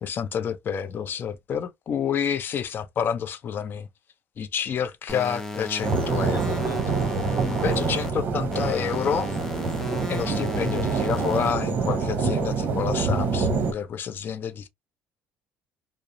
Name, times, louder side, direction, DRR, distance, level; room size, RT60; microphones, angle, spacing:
voice 1, 0.0-3.9 4.4-6.6 7.4-9.3 10.1-14.7, left 8 dB, 45° left, 0.5 m, -29 dB
sound 1, 5.1-8.1 8.5-11.5, left 2 dB, 10° left, 0.7 m, -34 dB
sound 2, 5.8-13.7, right 4 dB, 45° right, 0.7 m, -26 dB
2.3 x 2.0 x 2.8 m
cardioid pair, 95°, 5 cm